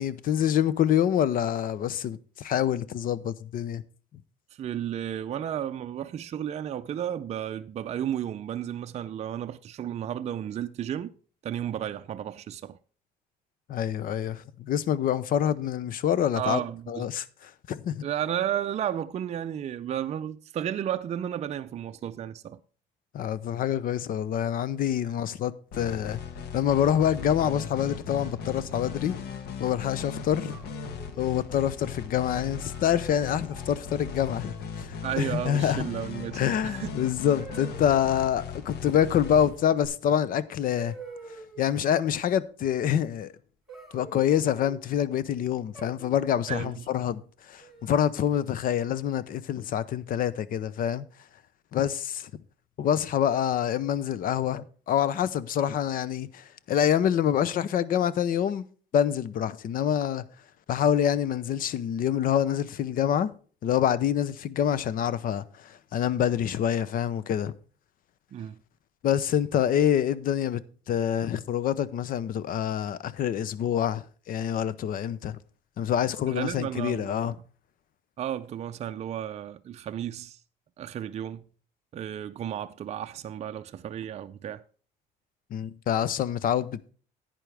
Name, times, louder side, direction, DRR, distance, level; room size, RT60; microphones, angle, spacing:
voice 1, 0.0-3.8 13.7-16.6 16.9-18.0 23.1-26.2 26.5-29.1 29.6-30.6 31.2-34.9 35.2-35.9 36.4-40.9 41.6-43.3 43.9-51.0 51.7-52.3 52.8-58.6 58.9-60.2 60.7-63.3 63.6-67.5 69.0-75.4 75.8-77.3 85.5-86.9, left 9 dB, 55° left, 0.7 m, -26 dB
voice 2, 4.5-11.1 11.4-12.8 16.3-17.1 18.0-22.6 35.0-37.0 46.5-46.9 68.3-68.6 76.3-77.4 78.2-80.4 80.8-81.4 81.9-84.6, right 10 dB, 40° right, 0.5 m, -33 dB
sound 1, 25.7-39.9, left 6 dB, 70° left, 1.3 m, -38 dB
sound 2, 30.5-31.4 32.6-33.0 33.5-33.8 35.2-35.9 37.4-38.0 39.9-40.0 40.8-41.7 43.7-44.8 45.7-46.4 47.6-48.2, right 4 dB, ahead, 4.5 m, -46 dB
11.0 x 9.1 x 3.4 m
cardioid pair, 110°, 17 cm